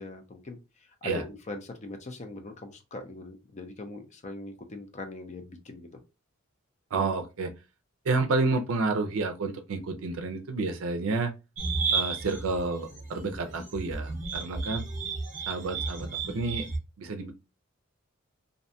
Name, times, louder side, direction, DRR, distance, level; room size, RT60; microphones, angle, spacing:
voice 1, 0.0-5.9, left 2 dB, 35° left, 0.5 m, -41 dB
voice 2, 6.9-7.5 8.0-11.3 11.9-14.9 15.5-16.7 17.0-17.3, right 3 dB, 85° right, 0.4 m, -30 dB
sound 1, 11.6-16.8, right 4 dB, 35° right, 0.8 m, -33 dB
2.6 x 2.2 x 2.6 m
head